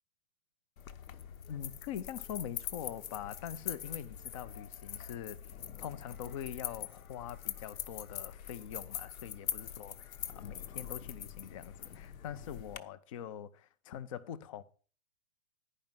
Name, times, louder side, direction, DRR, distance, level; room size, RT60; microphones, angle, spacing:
sound 1, 0.8-12.8, left 9 dB, 80° left, 1.0 m, -43 dB
voice 1, 1.5-14.6, left 9 dB, 25° left, 0.4 m, -44 dB
11.0 x 5.2 x 7.2 m
hypercardioid pair, 155°, 41 cm